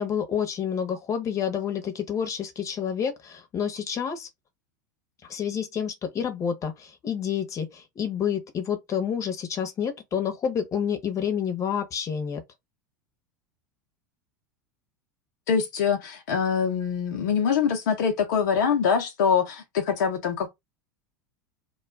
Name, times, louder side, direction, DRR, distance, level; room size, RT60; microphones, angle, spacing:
voice 1, 0.0-4.3 5.3-12.4, left 8 dB, 30° left, 0.9 m, -29 dB
voice 2, 15.5-20.5, left 6 dB, 65° left, 0.7 m, -24 dB
2.3 x 2.2 x 3.5 m
hypercardioid pair, 85°, 10 cm